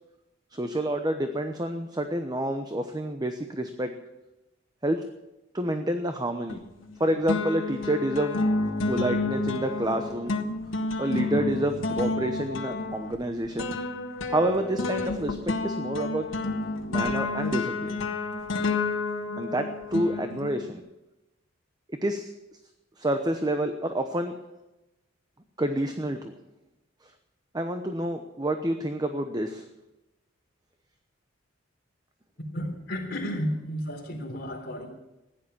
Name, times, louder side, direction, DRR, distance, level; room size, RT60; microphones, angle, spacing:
voice 1, 0.5-3.9 4.8-5.0 5.5-6.6 7.0-8.4 8.9-10.3 11.0-13.7 14.3-16.3 16.9-18.0 19.4-20.8 21.9-22.3 23.0-24.4 25.6-26.3 27.5-29.6, right 1 dB, 20° right, 7 dB, 0.9 m, -28 dB
sound 1, 6.5-7.0 7.3-20.7, left 3 dB, 90° left, 1.6 m, -30 dB
voice 2, 32.5-34.9, equal, 50° left, 1 dB, 3.8 m, -32 dB
16.0 x 10.5 x 7.0 m, 0.99 s
head